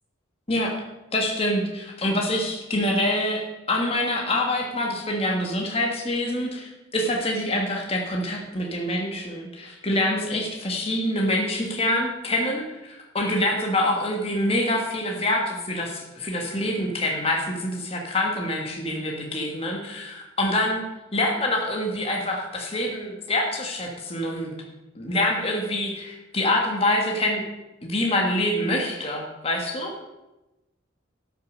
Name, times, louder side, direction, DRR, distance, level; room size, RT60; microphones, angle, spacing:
voice 1, 1.1-20.8 21.1-24.5 24.9-27.4 27.8-29.9, left 1 dB, 30° left, 0 dB, 1.5 m, -26 dB
12.0 x 6.7 x 6.5 m, 1.0 s
head